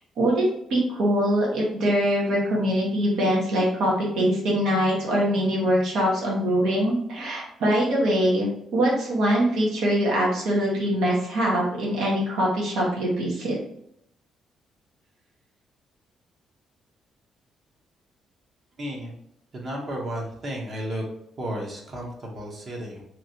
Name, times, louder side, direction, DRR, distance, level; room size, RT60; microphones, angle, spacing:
voice 1, 0.7-13.6, equal, 80° right, -4 dB, 1.2 m, -23 dB
voice 2, 18.8-19.1 19.5-21.0 21.4-23.0, right 1 dB, 40° right, -1 dB, 0.9 m, -33 dB
3.0 x 2.7 x 2.7 m, 0.75 s
cardioid pair, 135°, 0 cm